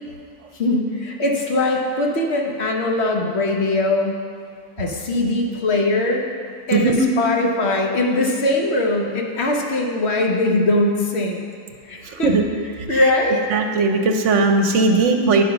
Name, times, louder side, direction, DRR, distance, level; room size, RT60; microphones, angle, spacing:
voice 1, 0.5-4.1 4.8-6.2 6.7-11.4 11.8-12.3 12.9-13.4, left 2 dB, 55° left, 0 dB, 1.1 m, -21 dB
voice 2, 6.7-7.1 12.0-12.4 12.9-13.0 13.5-15.4, right 3 dB, 65° right, 4 dB, 0.9 m, -18 dB
9.4 x 5.2 x 5.8 m, 2.1 s
omnidirectional pair, 1.4 m